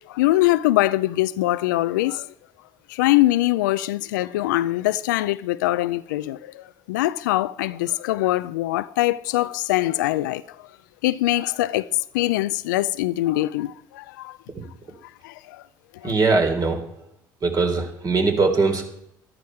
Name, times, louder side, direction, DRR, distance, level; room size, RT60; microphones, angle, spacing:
voice 1, 0.1-2.3 2.9-10.4 11.0-11.9 12.1-14.4 15.2-15.6 16.0-16.1, left 16 dB, 90° left, 0.4 m, -23 dB
voice 2, 16.0-16.8 17.4-18.9, right 3 dB, 40° right, 3.6 m, -21 dB
14.0 x 12.5 x 4.6 m
hypercardioid pair, 70°, 10 cm